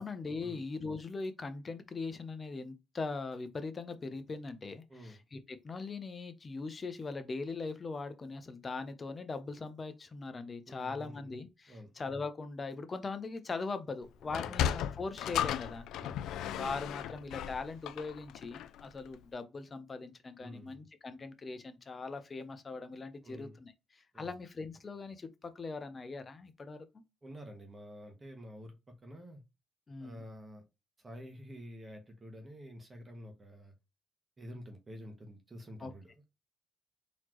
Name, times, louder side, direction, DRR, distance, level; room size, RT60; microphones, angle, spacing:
voice 1, 0.0-15.9 16.6-26.9 29.9-30.2 35.8-35.9, left 4 dB, 35° left, 0.7 m, -40 dB
voice 2, 4.9-5.2 10.7-11.2 11.7-11.9 14.4-14.6 16.0-16.2 20.4-20.8 23.2-23.6 24.1-24.3 27.2-28.7 29.0-29.4 30.0-30.6 31.0-33.7 34.4-36.2, equal, 25° right, 1.1 m, -49 dB
Sliding door, 14.2-18.9, left 10 dB, 85° left, 0.3 m, -35 dB
4.0 x 3.1 x 3.0 m
cardioid pair, 90°, 0 cm